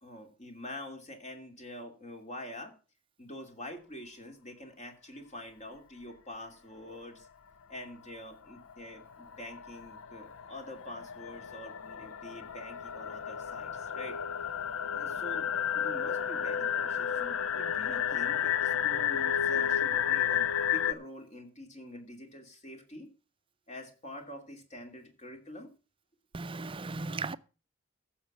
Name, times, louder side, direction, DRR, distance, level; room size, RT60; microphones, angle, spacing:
voice 1, 0.0-2.7 3.2-7.3 7.7-14.2 14.9-15.5 15.7-23.1 23.7-25.7, left 1 dB, 35° left, 2.7 m, -46 dB
sound 1, 8.1-8.2 8.5-20.9, left 9 dB, 85° left, 0.6 m, -32 dB
voice 2, 26.3-27.3, right 3 dB, 25° right, 0.6 m, -36 dB
14.5 x 7.1 x 6.1 m
head